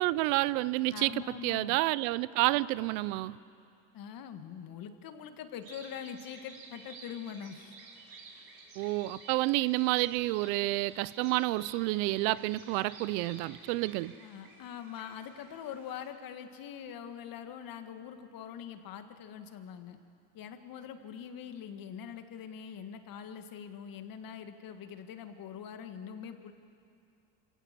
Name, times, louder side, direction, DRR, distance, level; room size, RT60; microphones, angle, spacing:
voice 1, 0.0-1.1 1.4-3.4 8.8-14.1, right 19 dB, 80° right, 19 dB, 0.7 m, -29 dB
voice 2, 0.9-1.8 2.4-2.6 3.9-7.8 14.2-20.0 20.3-26.5, left 8 dB, 55° left, 8 dB, 1.9 m, -43 dB
sound 1, 5.6-16.1, right 4 dB, 55° right, 4.2 m, -52 dB
26.0 x 17.5 x 7.6 m, 2.5 s
supercardioid pair, 105°, 41 cm